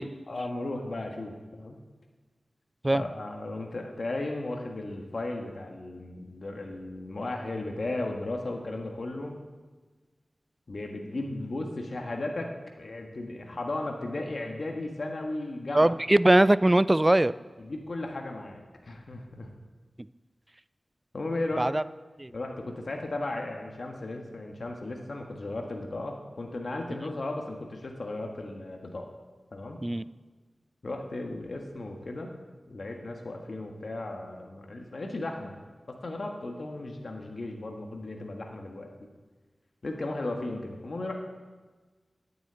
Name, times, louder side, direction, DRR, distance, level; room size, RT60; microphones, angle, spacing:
voice 1, 0.3-1.8 2.9-9.4 10.7-12.5 12.8-15.9 17.6-19.5 21.1-21.6 22.3-29.1 29.5-29.8 30.8-32.3 32.7-35.6 35.9-38.9 39.8-41.2, left 2 dB, 65° left, 2 dB, 1.6 m, -35 dB
voice 2, 15.7-17.3 21.6-21.8 22.2-22.3 29.8-30.0, right 1 dB, 25° right, 17 dB, 0.3 m, -21 dB
9.6 x 7.7 x 8.8 m, 1.3 s
wide cardioid pair, 60°, 0 cm